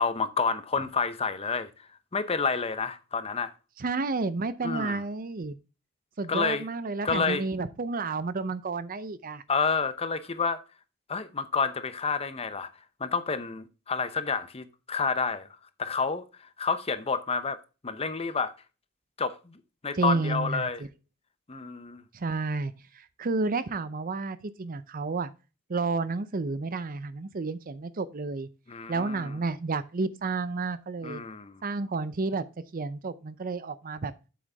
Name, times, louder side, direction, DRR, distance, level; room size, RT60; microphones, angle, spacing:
voice 1, 0.0-1.7 2.1-3.5 4.6-5.0 6.3-6.7 7.0-7.4 9.5-10.6 11.1-12.7 13.0-15.5 15.8-17.6 17.8-18.5 19.2-20.8 21.5-22.0 28.7-29.3 31.0-31.6, left 5 dB, 30° left, 0.7 m, -29 dB
voice 2, 3.8-5.6 6.2-9.4 19.9-20.7 22.1-25.3 25.7-28.5 28.9-31.2 31.6-32.5 32.7-34.1, right 3 dB, 45° right, 0.6 m, -31 dB
8.0 x 6.3 x 3.4 m
head